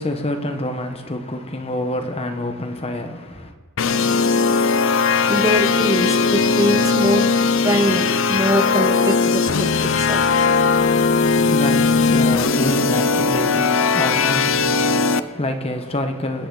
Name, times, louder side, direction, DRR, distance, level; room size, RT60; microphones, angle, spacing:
voice 1, 0.0-3.5 11.0-16.5, left 1 dB, 25° left, 1.1 m, -27 dB
sound 1, 3.8-15.2, left 4 dB, 65° left, 0.6 m, -18 dB
voice 2, 4.7-7.3 7.6-10.2, equal, 15° right, 0.9 m, -23 dB
25.0 x 9.9 x 3.9 m
head